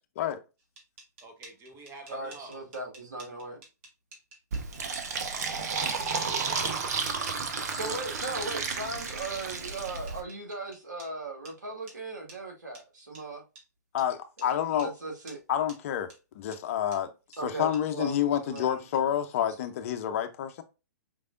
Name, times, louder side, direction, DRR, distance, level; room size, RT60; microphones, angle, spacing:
sound 1, 0.6-11.1 11.4-11.5 11.9-12.0 12.3-12.4 12.7-12.8 13.1-13.2 13.6-13.7 14.0-14.1 14.4-14.5 14.8-14.9 15.3-15.4 15.7-15.8 16.1-16.2 16.5-16.6 16.9-17.0 17.3-17.4 17.7-17.8 18.1-18.2 18.5-18.6 18.9-19.0, right 2 dB, 45° right, 2.1 m, -51 dB
voice 1, 1.2-2.6 5.3-7.0, right 2 dB, 25° right, 1.3 m, -49 dB
voice 2, 2.1-3.6 7.7-13.4 14.4-14.5 14.8-15.4 17.4-18.9, right 2 dB, 75° right, 2.0 m, -38 dB
Fill (with liquid), 4.5-10.2, right 5 dB, 60° right, 1.0 m, -32 dB
voice 3, 13.9-14.9 15.5-16.1 16.3-17.1 17.4-20.6, left 10 dB, 50° left, 0.6 m, -28 dB
5.2 x 3.4 x 2.5 m
hypercardioid pair, 120°, 10 cm